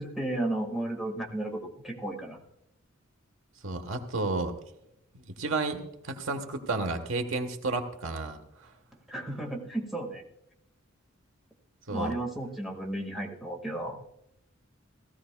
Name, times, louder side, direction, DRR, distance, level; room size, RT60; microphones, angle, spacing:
voice 1, 0.0-2.4 9.1-10.2 11.9-14.0, right 1 dB, ahead, -1 dB, 1.6 m, -33 dB
voice 2, 3.6-4.5 5.2-8.7 11.9-12.1, right 3 dB, 75° right, 6 dB, 1.1 m, -32 dB
17.5 x 14.5 x 2.2 m, 0.80 s
head